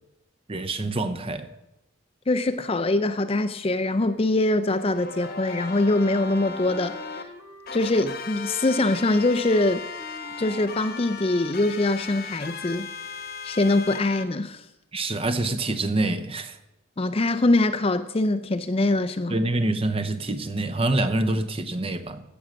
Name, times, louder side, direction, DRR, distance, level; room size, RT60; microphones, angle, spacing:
voice 1, 0.5-1.5 14.9-16.6 19.3-22.2, right 2 dB, 25° right, 0.7 m, -26 dB
voice 2, 2.3-7.2 7.7-9.8 10.4-12.9 13.4-14.6 17.0-19.4, left 2 dB, 25° left, 0.5 m, -23 dB
sound 1, 4.7-7.2 7.7-14.2, left 5 dB, 45° left, 1.1 m, -37 dB
Wind instrument woodwind instrument, 5.7-7.9 8.2-11.3, right 1 dB, 10° right, 1.1 m, -44 dB
15.5 x 7.1 x 6.3 m
head